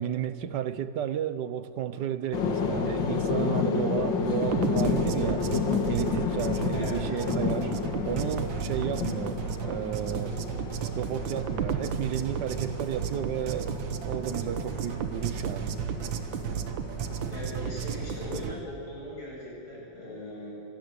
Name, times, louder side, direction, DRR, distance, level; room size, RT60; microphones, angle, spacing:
voice 1, 0.0-5.5 5.9-7.7 8.0-10.4 11.0-15.7, right 10 dB, 65° right, 1.4 m, -33 dB
sound 1, 2.3-18.6, left 5 dB, 70° left, 2.3 m, -32 dB
sound 2, 4.4-18.5, right 8 dB, 85° right, 1.9 m, -33 dB
voice 2, 17.3-20.5, left 1 dB, 55° left, 8.7 m, -39 dB
25.0 x 17.5 x 8.4 m
omnidirectional pair, 2.1 m